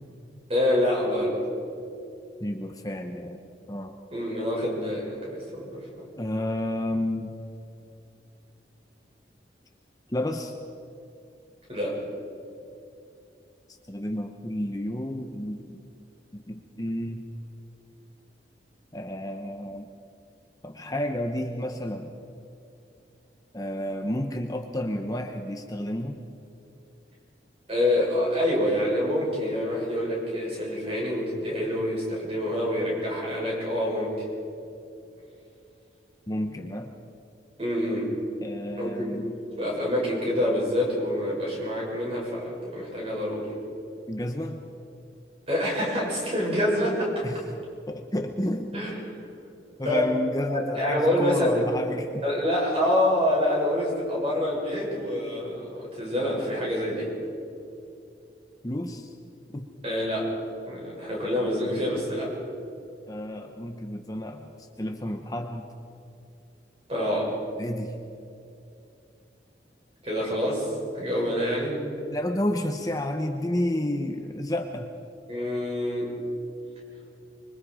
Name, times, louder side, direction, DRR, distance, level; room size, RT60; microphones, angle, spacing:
voice 1, 0.5-1.4 4.1-5.7 11.7-12.0 27.7-34.1 37.6-38.1 38.8-39.1 39.6-43.5 45.5-47.1 48.7-49.0 49.8-50.1 50.5-51.7 52.2-57.1 59.8-60.3 60.7-62.3 66.9-67.4 70.0-71.8 75.3-76.1, left 1 dB, 35° right, -3 dB, 7.3 m, -26 dB
voice 2, 2.4-3.4 3.7-3.9 6.2-7.3 10.1-10.5 13.7-15.8 16.3-17.2 18.9-19.9 20.6-22.1 23.5-26.2 36.3-36.9 38.4-39.3 44.1-44.6 47.2-47.4 47.9-48.9 49.8-52.3 58.6-59.1 59.5-59.6 63.1-65.7 67.6-67.9 72.1-74.9, left 1 dB, 20° left, 4 dB, 1.0 m, -31 dB
25.5 x 24.0 x 5.0 m, 2.7 s
head